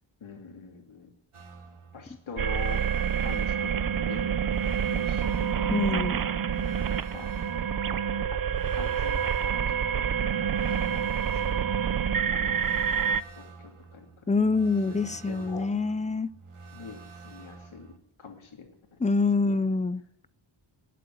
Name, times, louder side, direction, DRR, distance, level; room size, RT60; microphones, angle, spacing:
voice 1, 0.2-1.1 1.9-2.8 3.2-4.3 4.6-6.2 6.6-6.8 7.1-7.3 8.3-8.4 8.7-10.1 10.4-11.6 12.3-14.3 14.9-15.7 16.7-19.0 19.4-19.6, left 5 dB, 70° left, 2.7 m, -45 dB
sound 1, 1.3-18.0, right 4 dB, 85° right, 2.0 m, -49 dB
sound 2, 2.4-13.2, right 8 dB, 45° right, 0.6 m, -27 dB
voice 2, 5.7-6.3 14.3-16.3 19.0-20.0, left 3 dB, 15° left, 0.5 m, -25 dB
19.5 x 7.7 x 9.3 m
wide cardioid pair, 100°, 49 cm